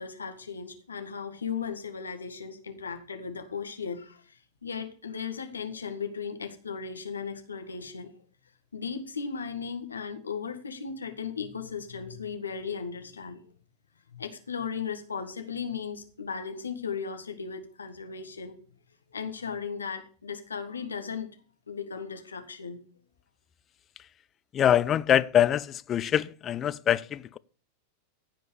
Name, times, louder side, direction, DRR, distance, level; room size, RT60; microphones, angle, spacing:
voice 1, 0.0-8.1 8.7-13.4 14.1-18.6 19.1-21.3 21.7-22.8, left 6 dB, 75° left, 1.8 m, -36 dB
voice 2, 24.5-27.4, left 10 dB, 25° left, 0.5 m, -24 dB
15.5 x 5.2 x 6.9 m
figure-of-eight pair, 90°, 0 cm